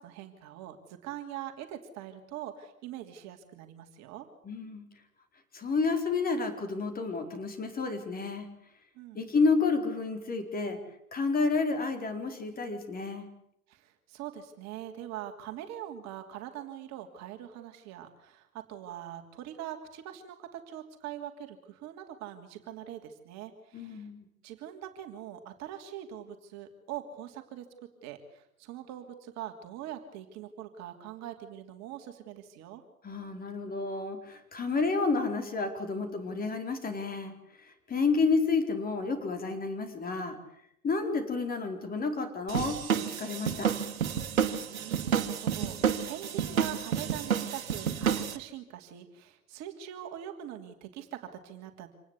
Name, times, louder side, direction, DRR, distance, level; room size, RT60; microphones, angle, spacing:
voice 1, 0.0-4.3 8.9-9.2 13.7-24.1 24.4-27.6 28.0-32.8 44.8-51.9, right 11 dB, 40° right, 6 dB, 2.9 m, -43 dB
voice 2, 4.4-4.8 5.5-8.5 9.1-10.8 11.1-13.3 23.7-24.2 33.0-37.3 37.6-40.4 40.8-43.8, left 4 dB, 20° left, 6 dB, 4.5 m, -30 dB
sound 1, 42.5-48.4, right 8 dB, 70° right, 2.1 m, -30 dB
26.5 x 19.5 x 8.4 m, 0.73 s
figure-of-eight pair, 95°, 43 cm